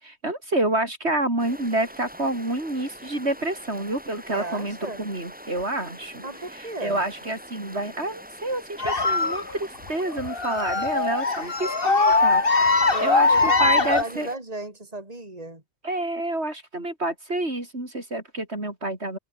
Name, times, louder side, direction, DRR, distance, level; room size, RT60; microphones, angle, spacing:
voice 1, 0.0-6.2 6.8-12.4 13.0-14.3 15.8-19.2, right 1 dB, 80° right, 6.3 m, -28 dB
sound 1, 1.4-14.4, equal, 10° right, 4.6 m, -44 dB
voice 2, 4.3-5.0 6.2-7.0 12.9-15.6, right 2 dB, 35° right, 4.1 m, -35 dB
sound 2, 8.8-14.0, left 3 dB, 55° left, 2.6 m, -21 dB
omnidirectional pair, 1.1 m